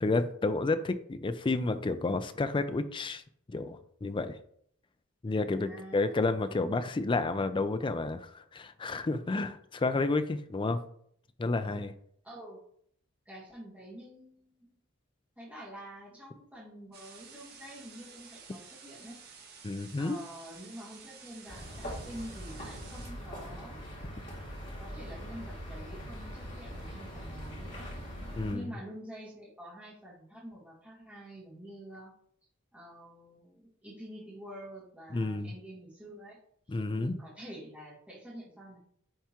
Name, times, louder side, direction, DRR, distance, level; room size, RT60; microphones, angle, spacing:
voice 1, 0.0-3.2 3.5-4.4 5.2-10.8 11.4-11.9 19.6-20.2 28.4-28.7 35.1-35.5 36.7-37.2, left 3 dB, 25° left, 11 dB, 0.4 m, -30 dB
voice 2, 5.4-6.2 12.2-12.6 13.3-14.8 15.4-19.2 20.0-23.8 24.8-27.9 28.5-32.1 32.7-36.4 36.7-38.8, right 1 dB, 5° right, -7 dB, 1.8 m, -47 dB
sound 1, 16.9-23.1, right 5 dB, 50° right, 1.4 m, -52 dB
sound 2, 21.5-28.5, equal, 40° left, 2.6 m, -42 dB
10.0 x 3.5 x 2.9 m, 0.65 s
head